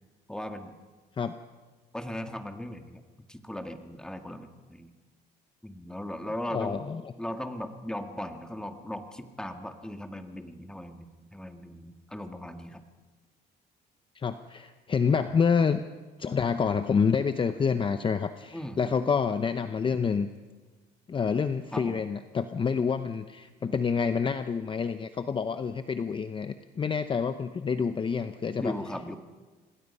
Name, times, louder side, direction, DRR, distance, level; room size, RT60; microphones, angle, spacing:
voice 1, 0.3-0.7 1.9-4.9 5.6-6.8 7.2-12.8 18.5-18.8 21.7-22.0 28.6-29.2, left 1 dB, 5° left, 6 dB, 1.8 m, -38 dB
voice 2, 6.5-7.0 14.1-15.8 16.2-20.3 21.1-28.7, left 6 dB, 30° left, 10 dB, 0.8 m, -28 dB
27.0 x 20.0 x 5.5 m, 1.3 s
cardioid pair, 110°, 17 cm